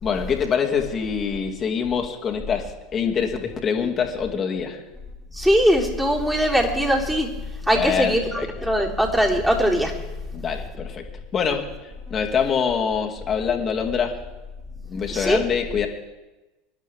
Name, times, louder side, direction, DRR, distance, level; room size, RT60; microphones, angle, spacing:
voice 1, 0.0-4.8 7.7-8.7 10.3-11.0 11.3-14.2 14.9-15.9, left 6 dB, 35° left, 1 dB, 2.3 m, -25 dB
voice 2, 5.3-7.3 7.7-8.2 8.6-9.9 15.1-15.4, equal, 5° right, -2 dB, 3.6 m, -20 dB
26.0 x 12.0 x 3.6 m, 1.1 s
figure-of-eight pair, 80°, 0 cm